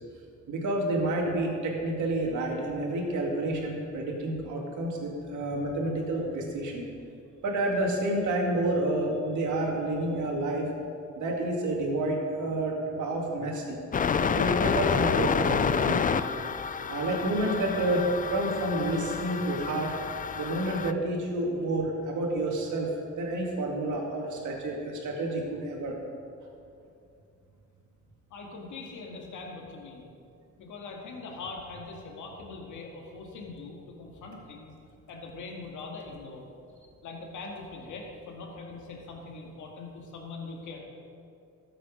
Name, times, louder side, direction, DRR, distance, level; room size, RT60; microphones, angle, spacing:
voice 1, 0.5-6.9 7.4-10.7 11.1-13.8 14.2-16.1 16.9-19.9 20.3-26.0, right 1 dB, 75° right, 0 dB, 2.3 m, -29 dB
sound 1, 13.9-20.9, left 6 dB, 30° left, 0.4 m, -29 dB
voice 2, 28.3-30.1 30.6-34.7 35.1-36.5 37.0-40.8, left 3 dB, 80° left, 1 dB, 2.0 m, -42 dB
13.5 x 7.7 x 5.1 m, 2.6 s
cardioid pair, 90°, 30 cm